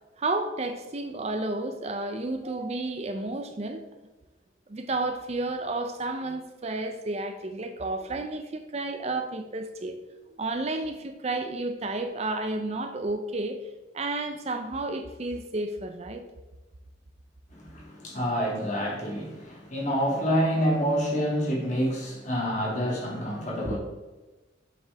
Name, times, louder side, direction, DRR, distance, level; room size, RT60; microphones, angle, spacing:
voice 1, 0.2-3.8 4.7-10.0 10.4-13.6 13.9-16.3 23.6-23.8, right 2 dB, 35° right, 0.5 m, -31 dB
voice 2, 17.5-23.8, equal, 35° left, 2.2 m, -27 dB
7.4 x 6.3 x 3.4 m
head